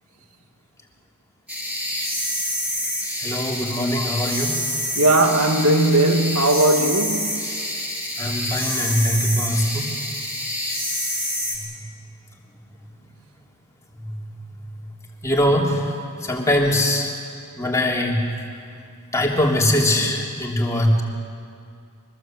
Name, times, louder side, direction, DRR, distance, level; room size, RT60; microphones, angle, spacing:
sound 1, 1.5-11.6, equal, 5° right, 6.8 m, -27 dB
voice 1, 3.2-4.5 8.2-9.9 14.0-14.2 15.2-15.9 16.2-17.1 17.6-18.2 19.1-21.0, left 1 dB, 15° left, 3.3 m, -21 dB
voice 2, 5.0-7.4, right 2 dB, 85° right, 2.0 m, -18 dB
24.0 x 20.5 x 8.0 m
head